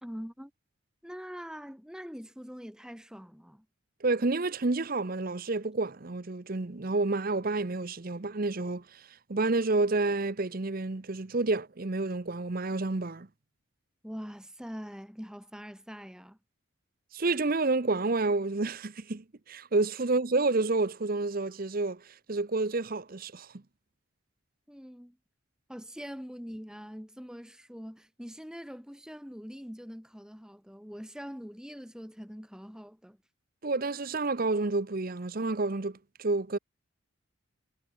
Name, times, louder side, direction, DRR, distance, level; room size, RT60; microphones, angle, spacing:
voice 1, 0.0-0.5 1.0-3.7 14.0-16.4 24.7-25.2 25.7-33.2, equal, 5° right, 2.7 m, -43 dB
voice 2, 4.0-8.8 9.3-13.3 17.1-22.0 22.3-23.5 33.6-36.6, right 3 dB, 45° right, 0.8 m, -29 dB
head